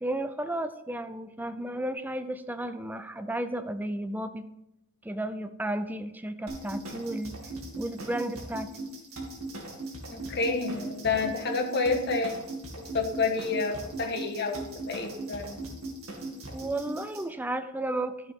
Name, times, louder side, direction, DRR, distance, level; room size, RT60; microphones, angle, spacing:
voice 1, 0.0-4.5 5.0-7.4 7.7-8.7 16.5-18.3, right 1 dB, 10° right, 10 dB, 0.4 m, -33 dB
sound 1, 6.5-17.2, right 2 dB, 80° right, 2.1 m, -39 dB
voice 2, 10.1-12.4 12.8-15.6, left 4 dB, 50° left, 3 dB, 1.3 m, -29 dB
12.0 x 6.8 x 3.6 m, 0.89 s
head